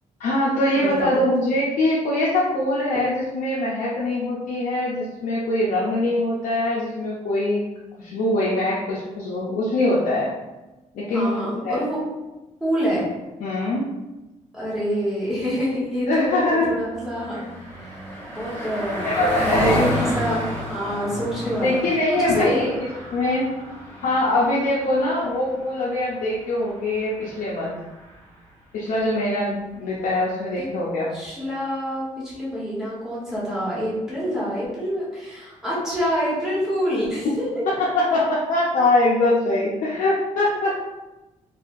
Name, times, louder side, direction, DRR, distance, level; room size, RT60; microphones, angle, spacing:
voice 1, 0.2-7.6 8.0-10.3 10.9-11.4 11.6-11.8 13.4-13.9 16.1-16.7 19.0-19.8 21.6-22.7 23.1-23.5 24.0-27.7 28.7-31.1 37.8-40.8, left 1 dB, 80° left, -6 dB, 0.6 m, -22 dB
voice 2, 0.7-1.2 11.1-12.0 12.6-13.1 14.5-17.4 17.8-17.9 18.3-19.2 19.4-22.7 30.6-30.7 31.1-37.5, equal, 5° right, -8 dB, 1.2 m, -27 dB
Car passing by, 16.5-28.3, equal, 15° left, 0.9 m, -31 dB
4.1 x 2.3 x 2.6 m, 1.1 s
wide cardioid pair, 175°, 13 cm